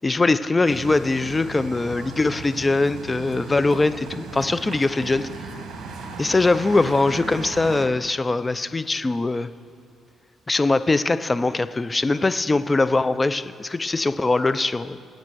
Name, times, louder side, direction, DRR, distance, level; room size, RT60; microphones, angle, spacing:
voice 1, 0.0-5.3 6.2-9.5 10.5-15.0, left 3 dB, 25° left, 13 dB, 0.5 m, -22 dB
sound 1, 0.6-7.9, right 4 dB, 70° right, 1.9 m, -37 dB
19.0 x 8.7 x 6.3 m, 2.4 s
cardioid pair, 80°, 0 cm